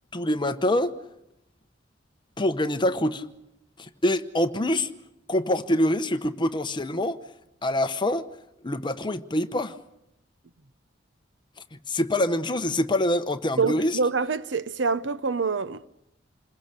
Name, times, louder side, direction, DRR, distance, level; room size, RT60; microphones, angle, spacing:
voice 1, 0.1-1.0 2.4-3.3 3.8-4.9 5.3-7.2 7.6-8.3 8.6-9.8 11.9-14.0, left 1 dB, 25° left, 0.9 m, -25 dB
voice 2, 13.6-15.9, right 4 dB, 70° right, 0.8 m, -26 dB
28.0 x 21.5 x 6.6 m
head